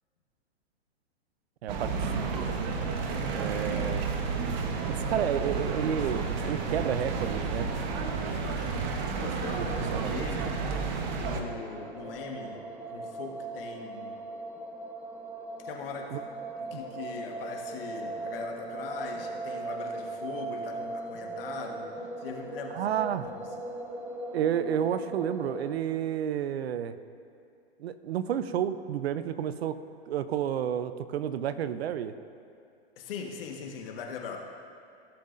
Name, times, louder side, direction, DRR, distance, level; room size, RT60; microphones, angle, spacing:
voice 1, 1.6-2.5 3.3-4.1 4.9-7.7 9.5-10.1 16.1-16.2 16.7-16.8 22.7-23.3 24.3-27.0 27.8-29.8 30.1-32.1, right 9 dB, 70° right, 12 dB, 0.6 m, -31 dB
sound 1, 1.7-11.4, right 4 dB, 45° right, 1.0 m, -31 dB
voice 2, 8.1-10.5 11.0-14.2 15.6-16.2 16.6-21.9 22.2-23.4 33.0-34.4, left 5 dB, 60° left, 2 dB, 1.4 m, -41 dB
sound 2, 10.7-25.7, right 2 dB, 5° right, 0.4 m, -39 dB
16.0 x 7.3 x 2.6 m, 2.5 s
hypercardioid pair, 130°, 32 cm